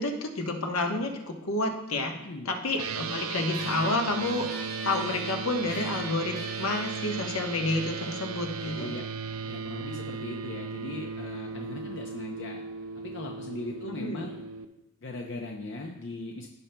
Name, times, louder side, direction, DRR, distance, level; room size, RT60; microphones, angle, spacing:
voice 1, 0.0-2.2 2.4-4.5 4.8-8.9 13.9-14.2, left 2 dB, 75° left, 2 dB, 1.0 m, -30 dB
voice 2, 2.2-2.5 8.7-9.0 9.5-12.7 12.9-14.4 15.0-16.5, left 2 dB, 55° left, 1 dB, 0.6 m, -39 dB
sound 1, 2.8-14.6, right 5 dB, 75° right, 0.5 m, -36 dB
sound 2, 3.5-10.3, left 1 dB, 15° left, 1.0 m, -46 dB
16.0 x 5.4 x 2.2 m, 0.90 s
head